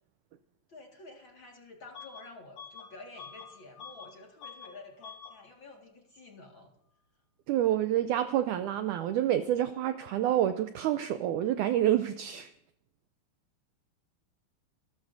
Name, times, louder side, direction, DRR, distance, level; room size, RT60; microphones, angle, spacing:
voice 1, 0.7-6.7, left 3 dB, 40° left, 0 dB, 2.1 m, -50 dB
Bus / Alarm, 1.9-2.3 2.6-4.1 4.4-4.7 5.0-5.4, left 6 dB, 60° left, 2.3 m, -47 dB
voice 2, 7.5-12.5, right 12 dB, 85° right, 10 dB, 1.8 m, -28 dB
27.0 x 13.0 x 2.7 m, 0.77 s
omnidirectional pair, 4.2 m